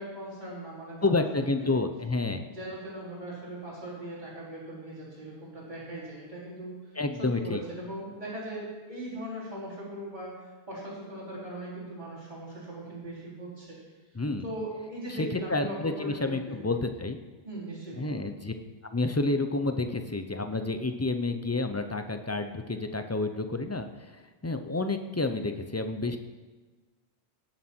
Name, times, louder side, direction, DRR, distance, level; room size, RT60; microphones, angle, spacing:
voice 1, 0.0-1.7 2.5-6.9 7.3-13.8 14.4-16.7 17.4-18.2, right 1 dB, 45° right, -8 dB, 3.9 m, -39 dB
voice 2, 1.0-2.4 7.0-7.6 14.1-14.4 15.2-17.2 18.0-18.5 18.9-23.9 24.4-26.2, left 2 dB, 20° left, 7 dB, 0.5 m, -29 dB
17.5 x 7.4 x 4.4 m, 1.3 s
omnidirectional pair, 1.1 m